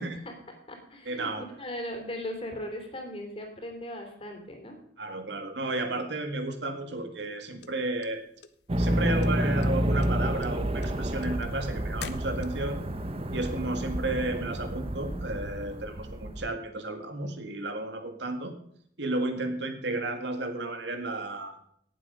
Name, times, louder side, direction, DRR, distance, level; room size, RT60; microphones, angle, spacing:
voice 1, 0.0-4.8, left 1 dB, 35° left, 4 dB, 3.2 m, -39 dB
voice 2, 1.1-1.4 5.0-8.2 8.8-12.8 13.3-18.5 19.0-21.5, right 2 dB, 85° right, 6 dB, 2.0 m, -32 dB
sound 1, 7.6-8.9 9.2-9.7 10.0-12.8, left 5 dB, 75° left, 0.9 m, -43 dB
sound 2, 8.7-16.5, equal, 35° right, 0.9 m, -30 dB
18.0 x 7.6 x 5.3 m, 0.67 s
head